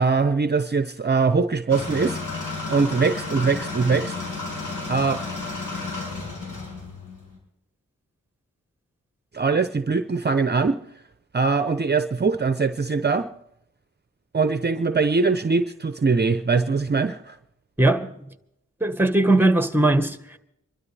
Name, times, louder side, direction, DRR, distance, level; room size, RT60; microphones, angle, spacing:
voice 1, 0.0-2.2 2.7-4.1 4.9-5.2 9.3-10.8 11.3-13.3 14.3-17.4, right 4 dB, 35° right, 0.7 m, -22 dB
sound 1, 1.7-7.4, left 3 dB, 80° left, 5.9 m, -32 dB
voice 2, 17.8-18.1 18.8-20.4, right 2 dB, 5° right, 1.3 m, -19 dB
26.0 x 12.5 x 3.4 m
cardioid pair, 50°, 31 cm